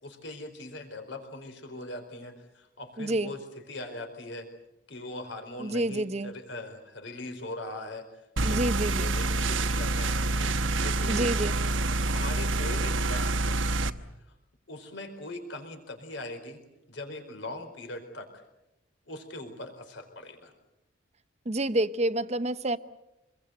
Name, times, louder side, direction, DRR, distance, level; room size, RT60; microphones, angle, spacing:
voice 1, 0.0-4.5 4.9-11.2 12.0-13.6 14.7-16.6 16.9-18.4 19.1-20.5, left 2 dB, 70° left, 6 dB, 4.5 m, -41 dB
voice 2, 3.0-3.3 5.6-6.3 8.4-9.1 11.1-11.5 21.5-22.8, right 1 dB, 35° right, 13 dB, 0.9 m, -28 dB
sound 1, 8.4-13.9, right 2 dB, 85° right, 1.1 m, -27 dB
26.5 x 22.0 x 8.0 m, 0.92 s
head